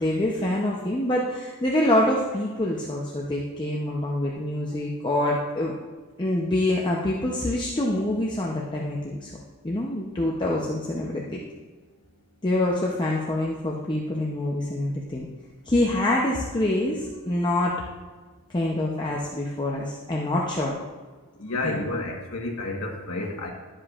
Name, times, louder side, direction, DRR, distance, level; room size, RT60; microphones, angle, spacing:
voice 1, 0.0-5.8 6.2-9.3 9.6-11.4 12.4-15.3 15.7-17.8 18.5-20.8 21.6-21.9, left 1 dB, 20° left, -3 dB, 0.7 m, -26 dB
voice 2, 21.4-23.5, left 2 dB, 70° left, 0 dB, 1.4 m, -30 dB
11.5 x 7.6 x 2.5 m, 1.3 s
head